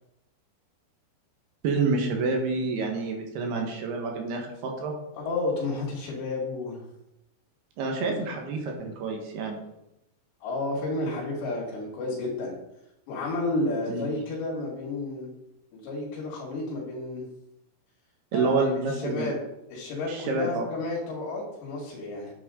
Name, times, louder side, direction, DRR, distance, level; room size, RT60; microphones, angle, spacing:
voice 1, 1.6-4.9 7.8-9.6 13.9-14.0 18.3-19.3 20.1-20.7, right 3 dB, 70° right, 2 dB, 3.3 m, -28 dB
voice 2, 5.2-6.8 10.4-12.5 13.1-15.3 15.7-17.3 18.3-19.4 19.7-22.3, left 2 dB, 75° left, -4 dB, 4.5 m, -31 dB
9.7 x 8.4 x 3.8 m, 0.85 s
omnidirectional pair, 5.1 m